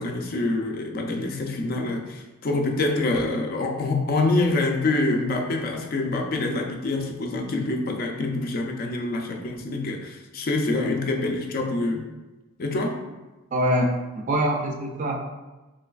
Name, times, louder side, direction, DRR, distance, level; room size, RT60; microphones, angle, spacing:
voice 1, 0.0-12.0 12.6-13.0, left 2 dB, 45° left, 2 dB, 0.4 m, -26 dB
voice 2, 13.5-15.2, equal, 35° right, 2 dB, 0.3 m, -25 dB
3.2 x 3.1 x 2.3 m, 1.1 s
head